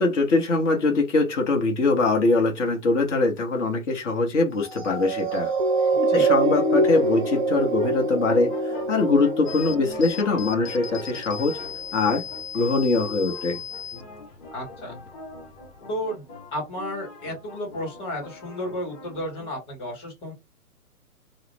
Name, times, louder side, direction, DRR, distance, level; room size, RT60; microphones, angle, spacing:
voice 1, 0.0-5.5 6.1-11.6 11.9-12.2 12.5-13.6, left 3 dB, 50° left, 0.9 m, -22 dB
sound 1, 4.7-11.3 11.9-12.1, right 2 dB, 35° right, 0.5 m, -25 dB
sound 2, 6.8-19.5, left 3 dB, 30° left, 1.0 m, -42 dB
sound 3, 9.5-15.9, left 8 dB, 85° left, 0.7 m, -39 dB
voice 2, 14.5-14.9 15.9-16.2 16.5-20.3, left 1 dB, 10° left, 1.2 m, -32 dB
2.3 x 2.0 x 3.2 m
hypercardioid pair, 130°, 45 cm